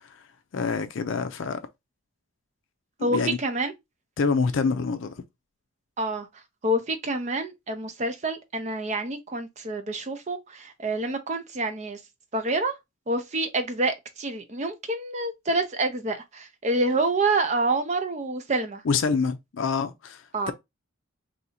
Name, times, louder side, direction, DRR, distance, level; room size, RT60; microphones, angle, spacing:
voice 1, 0.5-1.6 3.0-3.4 4.2-5.1 18.8-20.5, left 5 dB, 65° left, 0.4 m, -26 dB
voice 2, 3.0-3.7 6.0-6.3 6.6-12.0 12.3-12.7 13.1-18.8 20.3-20.5, right 2 dB, 35° right, 0.5 m, -27 dB
2.7 x 2.6 x 4.1 m
head